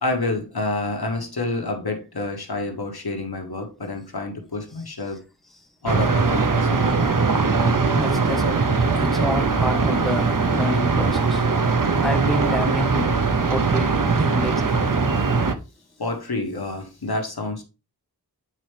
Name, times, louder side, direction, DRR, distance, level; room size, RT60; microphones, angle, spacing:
voice 1, 0.0-5.2 5.8-6.9 7.4-7.5 7.8-7.9 16.0-17.6, left 2 dB, 70° left, 1.4 m, -28 dB
sound 1, 5.9-15.5, right 4 dB, 55° right, 0.9 m, -21 dB
voice 2, 7.9-11.6 12.0-13.2 13.5-14.8, left 1 dB, ahead, 1.3 m, -29 dB
8.2 x 4.4 x 3.4 m
wide cardioid pair, 45°, 38 cm